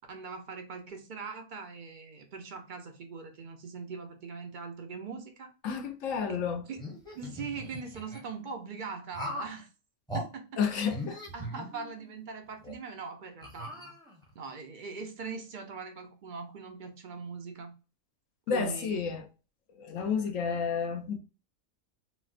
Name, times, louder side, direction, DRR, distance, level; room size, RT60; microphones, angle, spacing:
voice 1, 0.1-5.5 6.3-6.4 6.7-6.8 7.1-9.7 10.1-10.9 11.3-13.9 14.3-17.7 18.5-19.0, right 5 dB, 55° right, 0.5 m, -41 dB
voice 2, 5.6-6.7 10.6-11.2 18.5-19.3 19.7-21.2, left 6 dB, 70° left, 1.0 m, -31 dB
sound 1, 6.7-8.2 9.1-9.6 10.1-10.3 10.9-12.1 12.6-12.7 13.4-14.3, equal, 5° left, 0.6 m, -39 dB
4.2 x 2.0 x 2.4 m
omnidirectional pair, 1.4 m